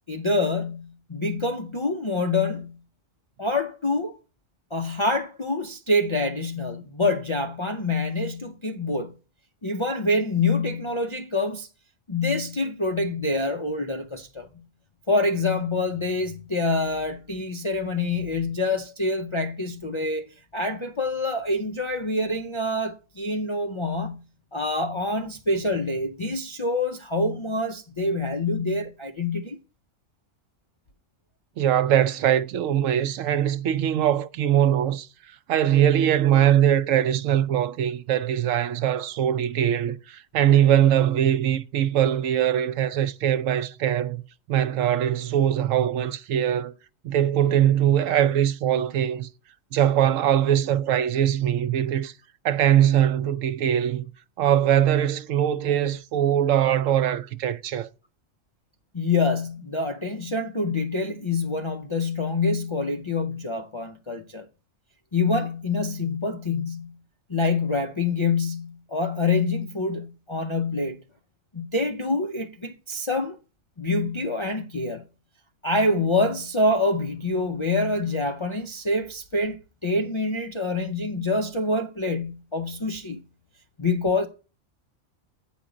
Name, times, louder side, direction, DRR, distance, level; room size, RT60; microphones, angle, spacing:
voice 1, 0.1-2.8 3.4-4.1 4.7-9.1 9.6-11.7 12.1-14.5 15.1-20.3 20.5-24.2 24.5-29.6 58.9-64.5 65.1-66.9 67.3-71.0 71.5-73.4 73.8-75.0 75.6-83.2 83.8-84.3, left 2 dB, 45° left, 0.4 m, -26 dB
voice 2, 31.6-35.1 35.5-44.2 44.5-46.7 47.0-49.3 49.7-52.1 52.4-54.1 54.4-57.9, right 10 dB, 80° right, 1.0 m, -22 dB
8.9 x 5.1 x 4.9 m
omnidirectional pair, 1.4 m